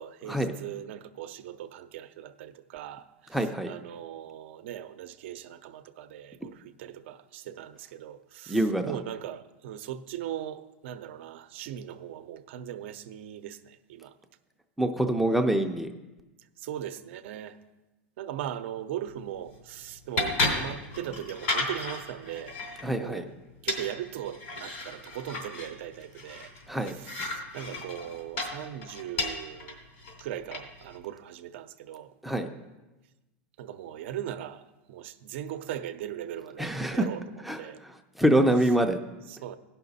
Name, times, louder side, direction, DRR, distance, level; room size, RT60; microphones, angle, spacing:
voice 1, 0.0-3.0 3.7-8.6 8.8-13.6 13.9-14.1 16.6-17.6 18.2-22.5 23.0-23.3 23.6-26.5 27.2-29.8 30.2-32.1 33.6-34.6 34.9-37.2 37.6-37.8 39.4-39.6, right 11 dB, 75° right, 0.6 m, -39 dB
voice 2, 3.3-3.7 8.5-9.0 14.8-15.9 22.8-23.2 26.7-26.9 32.2-32.5 36.6-37.1 37.4-39.0, right 1 dB, ahead, 0.4 m, -25 dB
sound 1, 19.0-31.0, left 2 dB, 80° left, 2.7 m, -35 dB
16.5 x 5.8 x 4.0 m
supercardioid pair, 145°, 7 cm